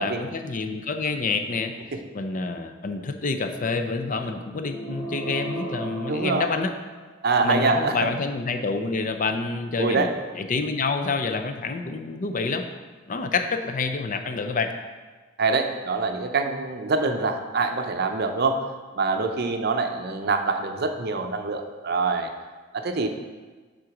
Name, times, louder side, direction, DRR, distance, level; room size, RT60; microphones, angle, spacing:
voice 1, 0.0-1.7 2.1-6.7 7.4-12.6 13.1-14.7, left 4 dB, 40° left, 7 dB, 0.5 m, -28 dB
sound 1, 4.6-7.3, right 1 dB, 5° left, 1.1 m, -35 dB
voice 2, 6.1-6.5 7.2-8.1 9.8-10.1 15.4-18.6 19.0-22.3 22.7-23.1, right 4 dB, 55° right, 6 dB, 0.6 m, -25 dB
7.8 x 3.8 x 5.9 m, 1.4 s
head